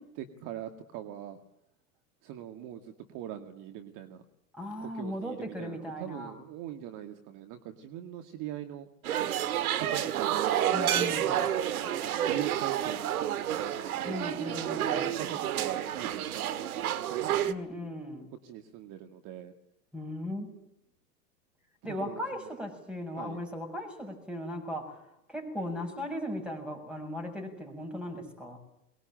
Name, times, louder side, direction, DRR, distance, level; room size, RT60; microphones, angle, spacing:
voice 1, 0.0-1.4 2.2-4.2 4.8-8.9 9.8-10.7 10.9-11.2 12.3-17.5 18.4-19.5 21.9-22.5 23.2-23.4, right 11 dB, 40° right, 7 dB, 2.1 m, -42 dB
voice 2, 4.5-6.3 10.7-11.5 14.0-15.1 17.4-18.3 19.9-20.5 21.8-25.0 25.3-28.6, left 1 dB, ahead, 2 dB, 7.2 m, -37 dB
sound 1, 9.0-17.5, right 11 dB, 70° right, 1.8 m, -30 dB
23.5 x 20.5 x 9.1 m, 0.81 s
hypercardioid pair, 105°, 46 cm